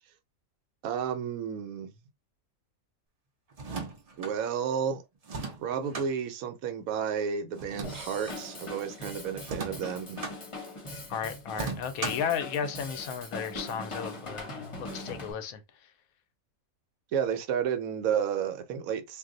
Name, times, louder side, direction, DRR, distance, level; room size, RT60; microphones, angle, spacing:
voice 1, 0.8-1.9 4.2-5.0 5.6-10.2 17.1-19.2, right 7 dB, 80° right, 1.0 m, -31 dB
sound 1, 3.5-4.3 5.2-6.1 7.6-8.4 9.4-10.4 11.5-12.3, right 3 dB, 45° right, 0.5 m, -37 dB
Drum kit / Drum, 7.8-15.3, left 2 dB, 30° left, 0.7 m, -41 dB
voice 2, 11.1-15.6, left 7 dB, 85° left, 1.0 m, -34 dB
2.5 x 2.1 x 3.7 m
omnidirectional pair, 1.5 m